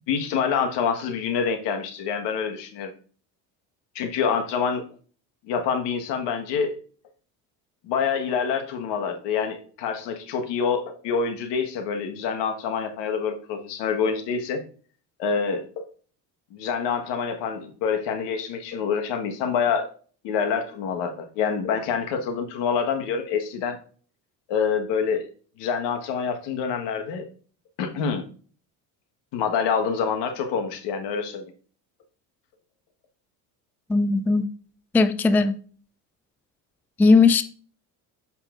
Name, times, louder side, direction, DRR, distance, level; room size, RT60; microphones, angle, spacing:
voice 1, 0.1-2.9 3.9-4.9 5.5-6.8 7.8-14.6 15.2-15.9 16.5-19.9 20.2-23.8 24.5-25.3 25.6-27.3 27.8-28.2 29.3-31.4, left 6 dB, 75° left, 1.5 m, -26 dB
voice 2, 33.9-34.4 34.9-35.6 37.0-37.4, left 4 dB, 5° left, 0.3 m, -18 dB
7.0 x 5.7 x 2.5 m
supercardioid pair, 90°, 42 cm